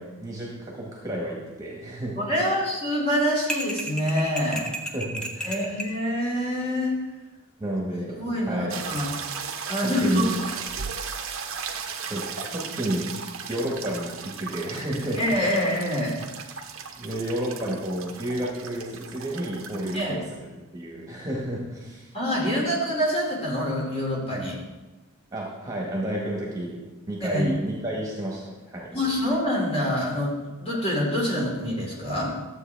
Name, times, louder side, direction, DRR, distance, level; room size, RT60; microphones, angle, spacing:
voice 1, 0.0-2.2 4.9-5.7 7.6-8.2 8.5-8.7 9.8-10.4 12.1-13.1 13.5-15.2 17.0-20.2 20.7-22.1 25.3-26.8 27.1-28.9, right 1 dB, 15° right, -3 dB, 1.6 m, -31 dB
voice 2, 2.2-4.7 5.4-7.0 8.1-9.1 9.6-10.2 15.2-16.1 19.9-20.1 22.1-24.6 27.2-27.5 28.9-32.3, equal, 25° left, -4 dB, 2.8 m, -26 dB
sound 1, 3.5-6.0, right 1 dB, 5° left, 0.7 m, -32 dB
sound 2, 8.7-20.0, right 6 dB, 65° right, 0.9 m, -36 dB
12.5 x 8.2 x 3.5 m, 1.2 s
head